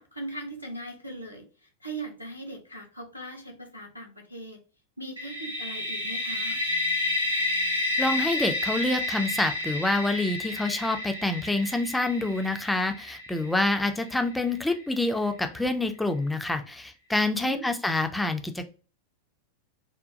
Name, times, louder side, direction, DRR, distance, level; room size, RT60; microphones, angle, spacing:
voice 1, 0.0-1.4 1.8-4.6 5.0-6.6 17.3-17.7, right 2 dB, 90° left, 1 dB, 0.8 m, -39 dB
sound 1, 5.2-14.9, left 2 dB, 80° right, 0.7 m, -31 dB
voice 2, 8.0-18.7, left 2 dB, 5° left, 6 dB, 0.4 m, -27 dB
3.7 x 2.2 x 2.5 m, 0.35 s
figure-of-eight pair, 90°, 0 cm